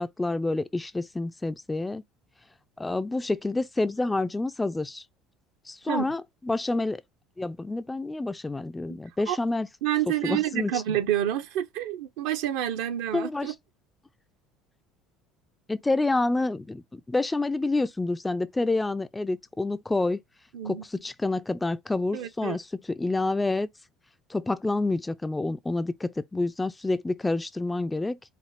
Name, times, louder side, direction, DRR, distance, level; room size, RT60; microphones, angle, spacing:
voice 1, 0.0-2.0 2.8-5.0 5.7-7.0 7.4-9.7 10.1-11.0 13.1-13.5 15.7-20.2 20.6-23.7 24.3-28.2, left 2 dB, 10° left, 0.3 m, -28 dB
voice 2, 9.8-13.5 20.5-20.8 22.1-22.6, right 11 dB, 60° right, 0.5 m, -28 dB
5.0 x 2.5 x 3.2 m
figure-of-eight pair, 60°, 0 cm